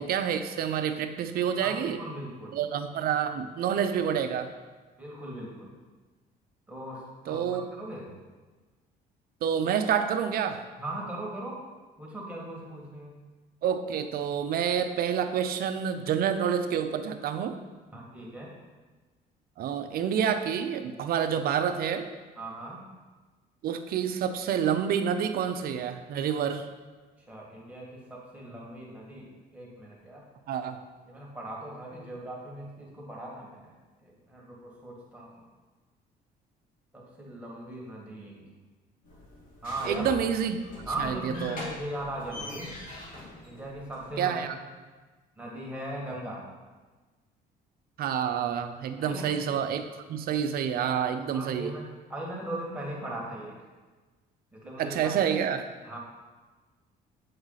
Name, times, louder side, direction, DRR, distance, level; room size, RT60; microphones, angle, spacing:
voice 1, 0.0-2.0 2.5-4.5 7.3-7.6 9.4-10.6 13.6-17.6 19.6-22.1 23.6-26.7 30.5-30.8 39.9-40.6 41.0-41.6 44.2-44.5 48.0-49.8 50.1-51.7 54.8-55.6, right 8 dB, 60° right, 8 dB, 0.6 m, -28 dB
voice 2, 1.6-2.6 5.0-5.8 6.7-7.4 7.8-8.1 10.8-11.6 12.0-13.2 17.9-18.5 22.4-22.8 27.3-30.2 31.1-33.7 34.0-35.4 36.9-38.5 39.6-40.1 40.9-42.7 43.4-44.5 45.4-46.4 49.0-49.3 51.3-53.7 54.5-55.1 55.8-56.0, right 1 dB, 10° right, -4 dB, 2.0 m, -39 dB
sound 1, 39.0-44.1, left 1 dB, 55° left, 1.8 m, -43 dB
7.7 x 4.8 x 4.0 m, 1.3 s
cardioid pair, 110°, 17 cm